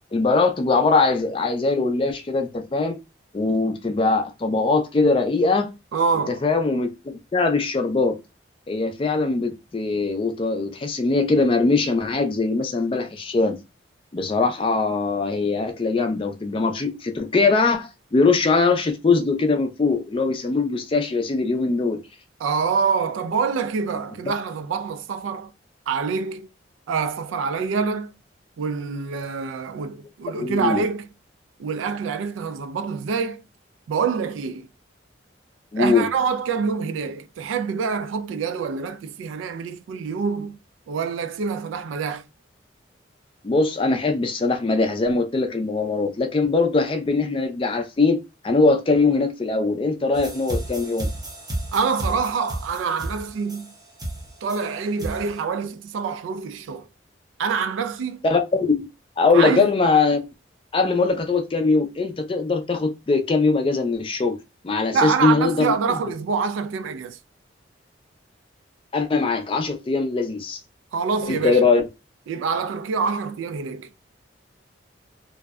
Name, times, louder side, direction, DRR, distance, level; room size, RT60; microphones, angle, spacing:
voice 1, 0.1-3.0 3.3-5.7 6.3-8.2 8.7-13.6 14.1-22.0 30.3-30.8 35.7-36.1 43.4-48.2 48.4-51.1 58.2-58.9 59.2-60.2 60.7-64.4 64.6-65.7 68.9-70.6 71.3-71.9, left 3 dB, 25° left, 0.3 m, -21 dB
voice 2, 5.9-6.4 22.4-25.5 25.9-26.5 26.9-28.1 28.6-31.1 31.6-33.4 33.9-34.7 35.8-40.6 40.9-42.3 51.7-53.7 54.4-56.9 57.4-58.2 59.3-59.7 64.9-67.2 70.9-71.6 72.3-74.1, right 5 dB, 85° right, 0.3 m, -26 dB
sound 1, 50.1-55.4, right 1 dB, 20° right, 0.6 m, -32 dB
2.6 x 2.1 x 2.2 m
head